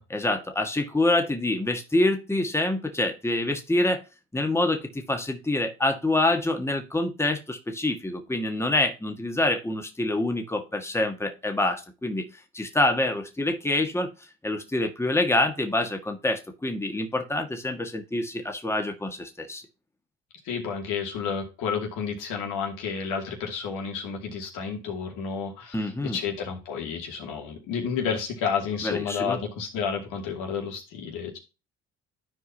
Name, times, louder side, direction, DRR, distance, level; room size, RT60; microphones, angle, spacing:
voice 1, 0.1-4.0 4.3-12.3 12.5-14.1 14.4-19.6 25.7-26.2 28.8-29.4, left 2 dB, 10° left, 5 dB, 1.6 m, -26 dB
voice 2, 20.4-31.4, left 6 dB, 80° left, 1 dB, 2.6 m, -31 dB
13.0 x 4.7 x 2.8 m, 0.29 s
supercardioid pair, 65°, 31 cm